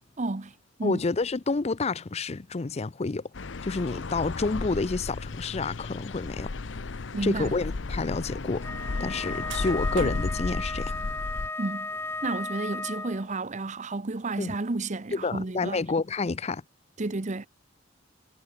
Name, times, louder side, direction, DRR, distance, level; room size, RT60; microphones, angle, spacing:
voice 1, 0.2-0.5 0.8-1.0 7.1-7.5 11.6-11.9 12.2-15.8 17.0-17.5, right 2 dB, 40° right, 0.9 m, -31 dB
voice 2, 0.8-6.5 7.2-8.7 9.0-11.0 14.4-14.5 15.1-16.6, left 3 dB, 35° left, 0.5 m, -29 dB
sound 1, 3.3-11.5, left 3 dB, 70° left, 0.8 m, -34 dB
Wind instrument woodwind instrument, 8.6-13.3, left 2 dB, 15° left, 2.1 m, -35 dB
sound 2, 9.2-9.3 9.5-12.3, right 3 dB, 70° right, 3.8 m, -41 dB
head